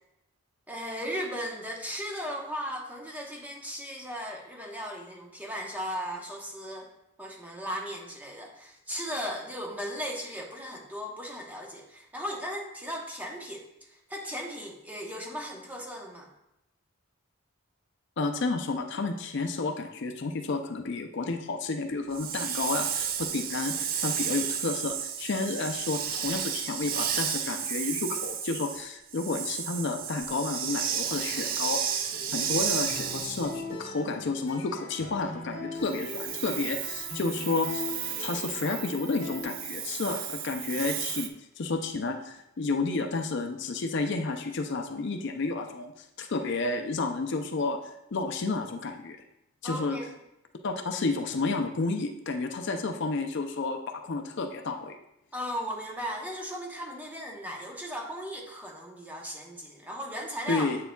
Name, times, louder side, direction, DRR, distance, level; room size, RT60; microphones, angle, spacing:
voice 1, 0.7-6.9 7.2-16.3 49.6-50.1 55.3-60.7, equal, 5° right, -1 dB, 0.9 m, -37 dB
voice 2, 18.2-32.0 32.3-47.8 48.1-49.2 49.6-50.0 50.6-55.0 60.5-60.8, left 3 dB, 50° left, 5 dB, 0.4 m, -31 dB
Hiss, 22.1-33.6 35.9-41.3, right 8 dB, 40° right, 0.4 m, -33 dB
sound 1, 31.3-39.4, left 2 dB, 70° left, 1.9 m, -41 dB
7.9 x 6.6 x 2.3 m, 0.84 s
head